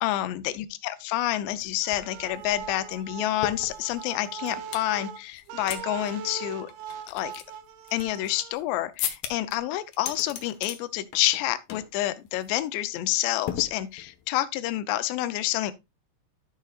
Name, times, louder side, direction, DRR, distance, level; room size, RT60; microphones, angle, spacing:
voice 1, 0.0-6.7 7.1-7.3 7.9-15.7, left 15 dB, 85° left, 2.9 m, -28 dB
sound 1, 1.6-1.7 1.9-4.9 5.3-5.8 6.1-6.2 6.7-8.6 9.0-9.6 9.9-10.8 11.1-11.4 11.7-12.0 12.3-12.5 13.5-14.2, left 10 dB, 70° left, 2.6 m, -36 dB
sound 2, 1.8-8.5, right 7 dB, 80° right, 1.9 m, -40 dB
12.5 x 6.5 x 2.4 m
omnidirectional pair, 4.8 m